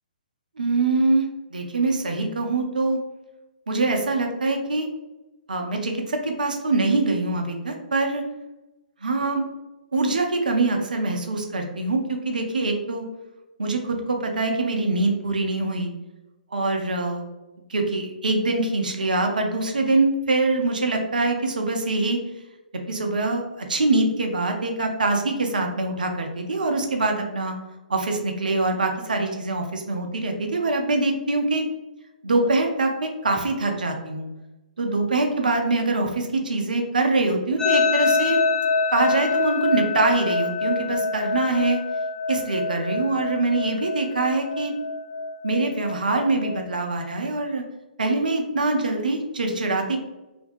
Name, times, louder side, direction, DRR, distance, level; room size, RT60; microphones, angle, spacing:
voice 1, 0.6-1.3 1.5-3.0 3.7-4.9 5.5-8.2 9.0-9.4 9.9-13.1 13.6-15.9 16.5-17.2 17.7-22.2 22.9-27.5 27.9-31.7 32.2-34.3 34.8-38.4 38.9-41.8 42.3-44.7 45.4-47.6 48.0-50.0, right 2 dB, 65° right, 4 dB, 0.5 m, -24 dB
sound 1, 37.6-46.6, left 4 dB, 10° left, 0.5 m, -26 dB
2.6 x 2.2 x 2.4 m, 1.0 s
figure-of-eight pair, 125°, 5 cm